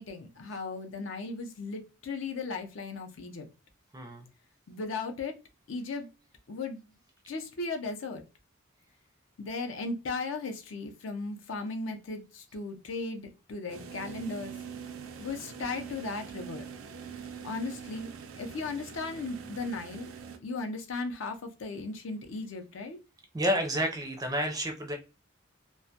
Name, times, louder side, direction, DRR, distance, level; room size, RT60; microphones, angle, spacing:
voice 1, 0.0-3.4 4.7-5.3 5.7-6.1 6.5-6.8 7.3-8.2 9.4-14.5 15.2-16.6 17.4-18.1 18.4-20.1 20.4-23.0, left 3 dB, 70° left, 5 dB, 0.5 m, -36 dB
voice 2, 3.9-4.3 23.3-25.0, equal, 20° right, 4 dB, 0.4 m, -30 dB
sound 1, 13.7-20.4, right 7 dB, 90° right, 0.4 m, -44 dB
2.2 x 2.1 x 2.7 m, 0.29 s
head